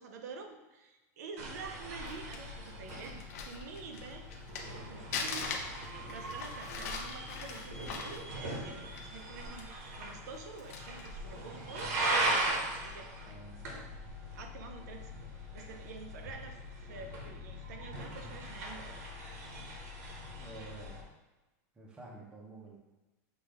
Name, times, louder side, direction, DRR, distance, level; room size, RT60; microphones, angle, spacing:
voice 1, 0.0-4.2 4.9-12.3 12.8-13.5 14.3-15.2 15.5-19.0, right 4 dB, 90° right, 4 dB, 0.6 m, -48 dB
sound 1, 1.4-21.0, right 1 dB, 70° right, 1.0 m, -39 dB
Crumpling crinkling, 1.8-4.8 5.1-9.2 9.6-9.7 10.3-11.1 11.7-11.9, left 5 dB, 70° left, 0.6 m, -41 dB
voice 2, 13.3-13.9 20.3-21.0 21.8-22.8, right 2 dB, 10° right, -2 dB, 0.5 m, -50 dB
6.0 x 2.3 x 3.3 m, 1.1 s
supercardioid pair, 175°, 9 cm